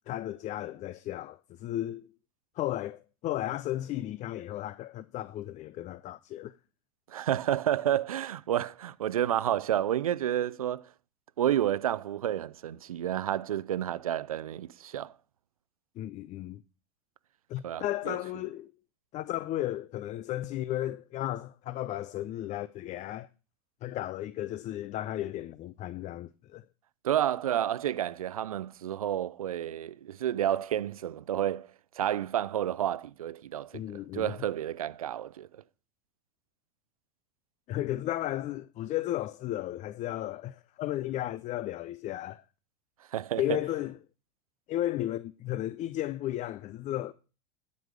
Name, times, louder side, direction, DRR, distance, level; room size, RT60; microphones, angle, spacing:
voice 1, 0.1-2.1 2.6-6.5 16.0-16.6 17.5-18.7 19.1-23.3 23.8-26.6 33.7-34.3 37.7-42.4 43.4-44.0 44.7-47.1, left 14 dB, 40° left, 0.5 m, -34 dB
voice 2, 7.1-10.9 11.4-15.1 17.6-18.2 27.0-31.7 32.0-33.8 34.1-35.5 43.1-43.6, right 11 dB, 90° right, 0.5 m, -30 dB
12.5 x 5.3 x 6.3 m
hypercardioid pair, 90°, 18 cm